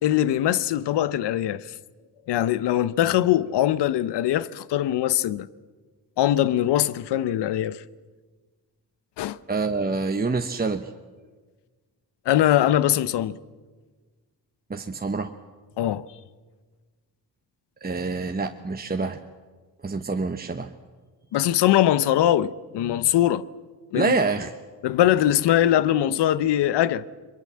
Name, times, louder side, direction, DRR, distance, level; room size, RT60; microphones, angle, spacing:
voice 1, 0.0-1.7 2.3-5.5 6.2-7.8 9.2-9.4 12.3-13.4 15.8-16.1 21.3-23.4 23.9-24.1 24.8-27.0, left 12 dB, 85° left, 0.8 m, -22 dB
voice 2, 9.5-10.9 14.7-15.3 17.8-19.2 19.8-20.7 23.9-24.5, right 3 dB, 25° right, 1.1 m, -26 dB
22.5 x 22.5 x 7.5 m
cardioid pair, 75°, 40 cm